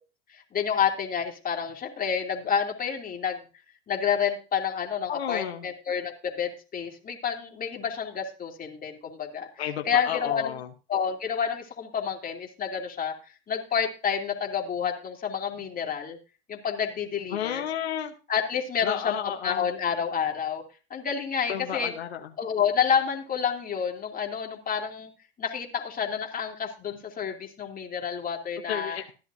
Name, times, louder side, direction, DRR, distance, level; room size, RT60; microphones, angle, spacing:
voice 1, 0.3-3.4 3.9-9.5 9.8-10.6 10.9-13.1 13.5-16.2 16.5-17.6 18.3-20.6 20.9-21.9 22.4-25.1 25.4-29.0, left 7 dB, 30° left, 2 dB, 2.7 m, -29 dB
voice 2, 5.1-5.7 9.6-10.7 17.3-18.1 18.8-19.7 21.5-22.3 28.7-29.1, left 9 dB, 85° left, 5 dB, 1.1 m, -32 dB
14.5 x 10.5 x 2.7 m, 0.33 s
hypercardioid pair, 90°, 31 cm